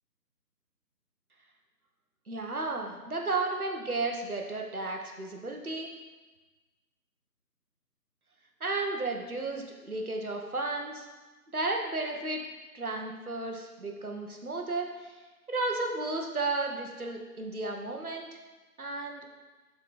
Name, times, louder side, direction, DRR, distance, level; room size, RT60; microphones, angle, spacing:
voice 1, 2.3-5.9 8.6-11.1 11.5-12.4 12.7-15.1 15.5-18.3 18.8-19.3, right 3 dB, 60° right, 2 dB, 1.4 m, -33 dB
10.5 x 4.4 x 4.2 m, 1.2 s
figure-of-eight pair, 165°, 49 cm